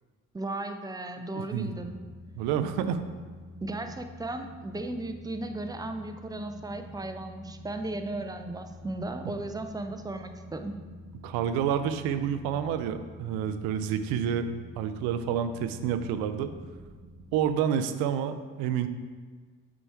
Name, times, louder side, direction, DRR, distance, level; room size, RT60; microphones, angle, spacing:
voice 1, 0.3-2.0 2.8-3.0 3.6-10.7, right 2 dB, 10° right, 7 dB, 0.5 m, -36 dB
voice 2, 1.3-1.7 2.3-3.0 11.2-14.5 14.8-16.5 17.3-18.9, right 8 dB, 80° right, 10 dB, 0.5 m, -29 dB
sound 1, 1.6-17.5, left 1 dB, 40° right, 1.0 m, -47 dB
6.9 x 3.0 x 4.6 m, 1.5 s
hypercardioid pair, 50°, 36 cm